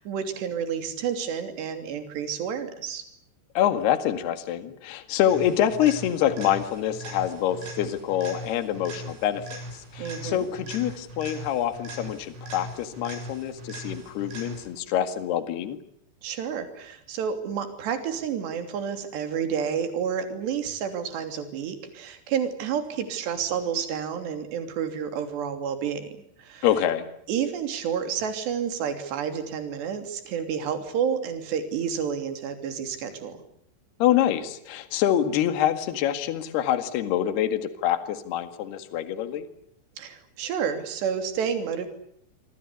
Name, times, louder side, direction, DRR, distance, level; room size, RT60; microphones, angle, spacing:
voice 1, 0.0-3.0 10.0-10.5 16.2-26.0 26.4-26.7 27.3-33.4 40.0-41.9, right 7 dB, 65° right, 8 dB, 5.0 m, -30 dB
voice 2, 3.6-9.6 9.9-15.8 26.6-27.1 34.0-39.5, left 11 dB, 65° left, 10 dB, 3.7 m, -26 dB
sound 1, 5.3-14.9 22.9-23.0, right 1 dB, 85° right, 9.8 m, -40 dB
27.0 x 24.0 x 8.2 m, 0.71 s
omnidirectional pair, 5.4 m